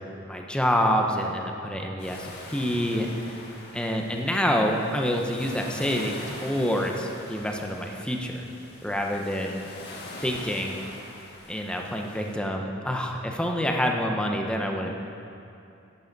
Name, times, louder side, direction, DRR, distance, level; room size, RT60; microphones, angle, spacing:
voice 1, 0.0-3.4 3.7-8.5 8.8-9.7 10.2-10.8 11.5-14.9, equal, 5° left, 1 dB, 0.8 m, -27 dB
sound 1, 2.0-12.4, left 2 dB, 55° left, 1.5 m, -43 dB
11.0 x 11.0 x 4.1 m, 2.6 s
head